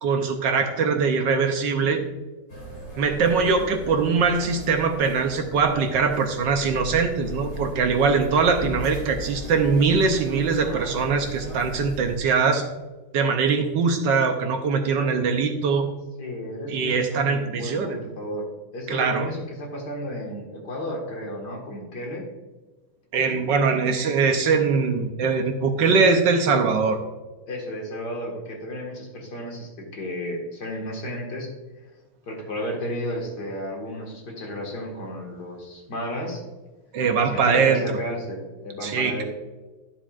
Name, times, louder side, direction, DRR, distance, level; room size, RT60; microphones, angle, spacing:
voice 1, 0.0-2.0 3.0-12.6 13.1-15.9 16.7-18.0 18.9-19.3 23.1-27.0 36.9-38.0 38.8-39.2, right 5 dB, 70° right, 5 dB, 1.3 m, -22 dB
sound 1, 2.5-12.2, equal, 35° left, 2.9 m, -38 dB
voice 2, 16.2-18.5 18.7-22.3 27.5-31.5 32.3-36.4 37.2-39.2, equal, 55° left, 0 dB, 2.3 m, -33 dB
12.0 x 7.2 x 2.5 m, 1.2 s
omnidirectional pair, 2.2 m